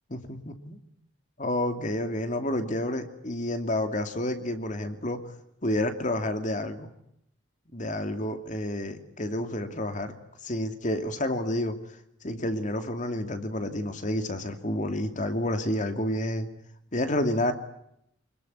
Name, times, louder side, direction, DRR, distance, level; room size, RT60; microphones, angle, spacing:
voice 1, 0.1-0.8 1.4-5.2 5.6-6.9 7.7-10.1 10.4-11.8 12.2-16.5 16.9-17.5, left 1 dB, 40° left, 7 dB, 2.7 m, -29 dB
26.0 x 21.5 x 9.6 m, 0.77 s
head